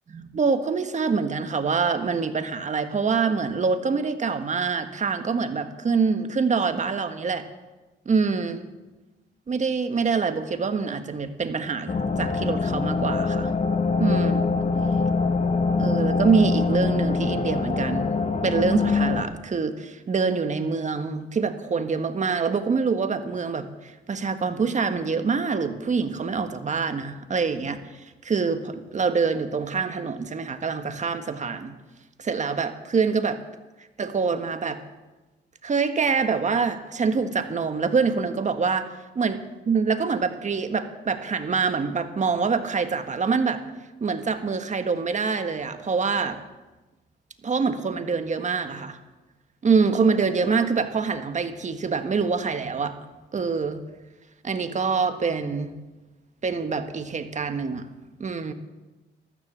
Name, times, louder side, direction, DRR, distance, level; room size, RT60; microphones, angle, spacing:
voice 1, 0.1-7.4 8.0-8.6 9.5-13.5 14.0-14.5 15.8-18.1 18.4-31.7 32.2-33.4 34.0-34.8 35.6-38.9 39.1-39.4 39.7-43.6 44.0-46.4 47.4-49.0 49.6-53.0 53.3-53.8 54.4-55.8 56.4-57.9 58.2-58.5, right 5 dB, 35° right, 8 dB, 1.6 m, -25 dB
sound 1, 11.9-19.2, left 4 dB, 35° left, 1.5 m, -24 dB
14.0 x 13.0 x 7.5 m, 1.1 s
cardioid pair, 90°, 20 cm